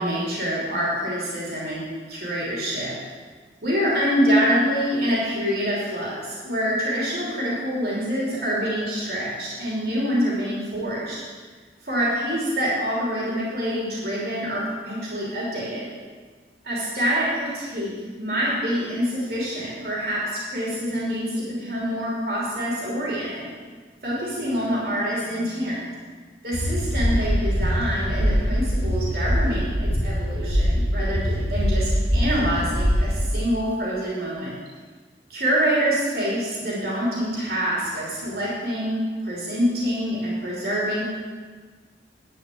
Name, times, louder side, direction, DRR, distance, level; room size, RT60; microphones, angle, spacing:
voice 1, 0.0-3.0 3.6-11.2 11.8-15.9 16.6-23.5 24.0-26.0 26.4-34.5 35.3-41.0, equal, 55° right, -6 dB, 3.1 m, -26 dB
sound 1, 26.5-33.3, equal, 30° right, 2.2 m, -23 dB
10.5 x 5.3 x 8.4 m, 1.5 s
head